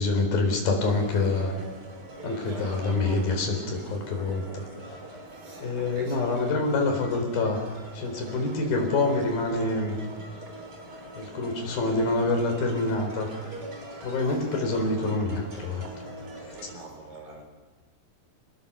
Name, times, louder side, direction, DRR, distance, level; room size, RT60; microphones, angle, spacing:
voice 1, 0.0-1.5 2.2-4.7 5.6-7.6 7.9-10.0 11.2-13.3 14.0-15.9 16.5-16.6, left 3 dB, 80° left, 4 dB, 5.8 m, -26 dB
sound 1, 0.7-16.7, right 1 dB, 30° right, 3.4 m, -43 dB
voice 2, 2.4-2.9 5.3-6.6 14.2-14.5 16.6-17.4, right 2 dB, 55° right, 3 dB, 5.8 m, -47 dB
26.0 x 20.0 x 7.0 m, 1.3 s
omnidirectional pair, 4.1 m